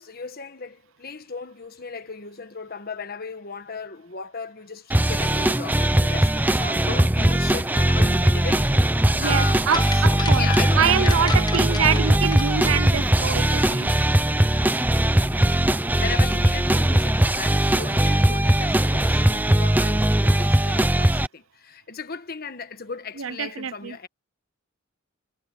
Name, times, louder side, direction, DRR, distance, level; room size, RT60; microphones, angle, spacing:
voice 1, 0.0-9.6 9.9-11.2 12.0-12.2 15.9-24.1, left 4 dB, 45° left, 1.4 m, -36 dB
sound 1, 4.9-21.3, right 1 dB, 10° right, 0.6 m, -20 dB
voice 2, 9.1-10.5 10.8-13.9 23.2-24.0, right 7 dB, 70° right, 0.6 m, -25 dB
sound 2, 9.7-13.8 14.0-14.1, left 4 dB, 20° left, 1.1 m, -34 dB
head